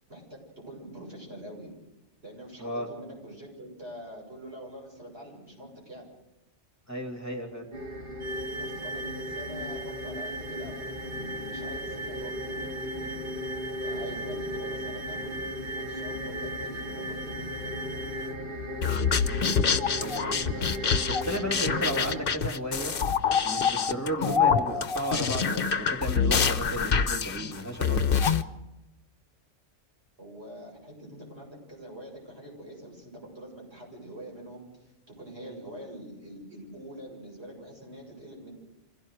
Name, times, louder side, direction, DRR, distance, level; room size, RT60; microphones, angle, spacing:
voice 1, 0.1-1.7 2.2-6.1 8.6-13.2 13.8-15.5 15.8-17.7 30.2-38.5, equal, 60° right, -2 dB, 8.2 m, -45 dB
voice 2, 6.9-7.7 19.2-23.0 23.4-28.0, right 1 dB, 15° left, 1 dB, 2.6 m, -34 dB
sound 1, 7.7-22.2, left 1 dB, 45° right, 3.8 m, -36 dB
sound 2, 8.2-18.4, right 2 dB, 20° right, 0.6 m, -39 dB
sound 3, 18.8-28.4, left 6 dB, 50° left, 1.1 m, -26 dB
26.5 x 17.0 x 6.6 m, 0.94 s
omnidirectional pair, 1.2 m